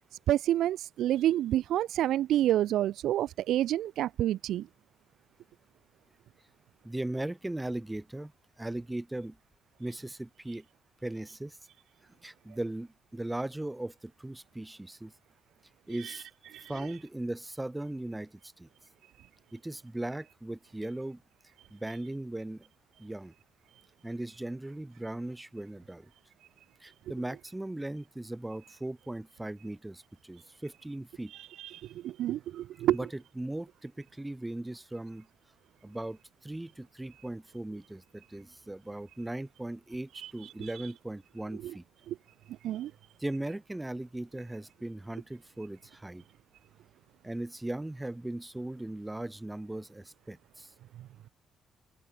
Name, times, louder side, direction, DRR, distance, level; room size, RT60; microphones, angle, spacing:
voice 1, 0.3-4.7 16.0-16.2 16.5-16.7 31.6-33.0 40.2-40.3 41.6-41.7 42.1-42.2 42.6-42.9, right 12 dB, 80° right, 0.4 m, -28 dB
voice 2, 6.8-8.3 8.6-9.4 9.8-10.7 11.0-11.6 12.2-15.1 15.9-16.3 16.7-18.7 19.5-21.2 21.7-22.7 23.0-23.3 24.0-26.1 26.8-31.3 32.9-35.3 35.8-41.8 43.2-46.2 47.2-50.7, right 1 dB, 10° right, 1.9 m, -38 dB
open air
cardioid pair, 90°, 0 cm